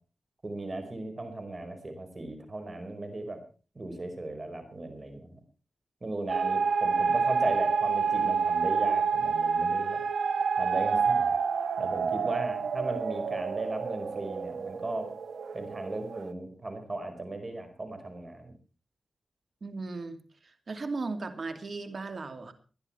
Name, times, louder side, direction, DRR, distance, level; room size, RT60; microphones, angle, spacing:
voice 1, 0.4-3.4 3.7-5.4 6.0-10.0 10.6-11.3 11.8-15.1 15.5-18.5, right 2 dB, 40° right, 8 dB, 4.8 m, -37 dB
sound 1, 6.3-16.3, right 5 dB, 85° right, 1.0 m, -28 dB
voice 2, 19.6-22.5, right 3 dB, 55° right, 8 dB, 2.5 m, -37 dB
21.0 x 11.0 x 4.4 m, 0.37 s
cardioid pair, 65°, 0 cm